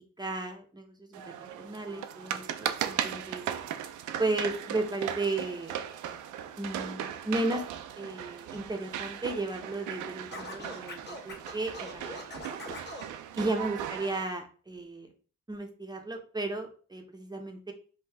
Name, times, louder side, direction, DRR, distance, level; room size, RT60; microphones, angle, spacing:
voice 1, 0.2-3.4 4.2-5.8 6.6-7.6 8.0-12.2 12.5-12.6 13.4-15.1 15.5-17.7, right 2 dB, 15° right, 3 dB, 0.8 m, -34 dB
sound 1, 1.1-14.2, right 10 dB, 80° right, 0.5 m, -37 dB
Scratching (performance technique), 10.3-13.1, left 1 dB, 35° left, 1.5 m, -42 dB
5.4 x 2.5 x 3.3 m, 0.40 s
cardioid pair, 90°, 30 cm